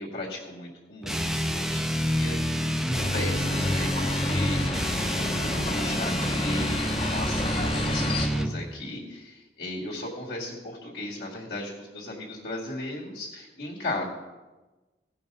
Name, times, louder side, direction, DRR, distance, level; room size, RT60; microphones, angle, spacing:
voice 1, 0.0-6.7 7.0-14.0, left 1 dB, 75° left, -4 dB, 2.0 m, -36 dB
sound 1, 1.0-8.6, equal, ahead, 0.5 m, -28 dB
sound 2, 3.0-8.3, left 2 dB, 30° left, 0.8 m, -31 dB
16.0 x 5.6 x 5.4 m, 1.2 s
head